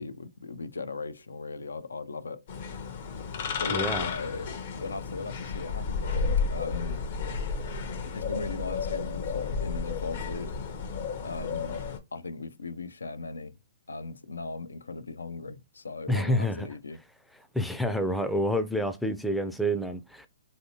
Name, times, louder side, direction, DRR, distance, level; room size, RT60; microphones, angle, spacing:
voice 1, 0.0-2.5 3.6-7.0 8.1-10.5 11.2-11.8 12.1-13.5 13.9-17.0, left 3 dB, 90° left, 0.3 m, -38 dB
sound 1, 2.5-12.0, left 5 dB, 55° left, 0.7 m, -32 dB
voice 2, 3.7-4.1 16.1-16.7 17.5-20.3, equal, ahead, 0.3 m, -28 dB
3.1 x 2.7 x 2.7 m
hypercardioid pair, 135°, 0 cm